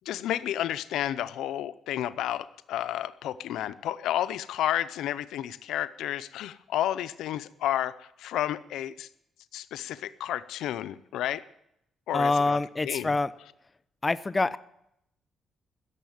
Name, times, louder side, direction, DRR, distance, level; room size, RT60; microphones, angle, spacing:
voice 1, 0.1-9.1 9.5-11.4 12.1-12.6 12.8-13.1, left 12 dB, 85° left, 15 dB, 0.6 m, -31 dB
voice 2, 12.1-13.3 14.0-14.6, left 3 dB, 25° left, 15 dB, 0.6 m, -25 dB
16.0 x 7.2 x 9.4 m, 0.77 s
cardioid pair, 90°, 0 cm